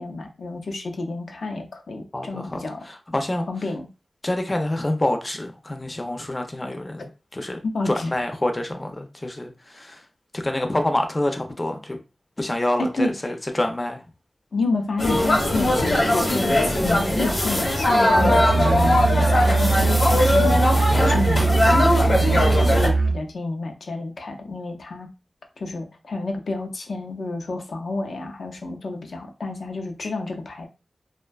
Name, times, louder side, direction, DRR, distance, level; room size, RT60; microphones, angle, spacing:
voice 1, 0.0-2.8 3.5-3.9 7.6-8.1 12.9-13.1 14.5-20.8 21.0-25.1 25.6-30.7, left 3 dB, 80° left, 3 dB, 0.5 m, -29 dB
voice 2, 2.1-3.5 4.2-7.6 7.8-10.0 10.3-12.0 12.4-14.0, left 1 dB, 30° left, 5 dB, 0.4 m, -27 dB
sound 1, 15.0-22.9, left 1 dB, 60° left, 0.9 m, -20 dB
Musical instrument, 18.1-23.3, right 3 dB, 90° right, 0.5 m, -21 dB
2.5 x 2.1 x 2.3 m, 0.30 s
wide cardioid pair, 75°, 0 cm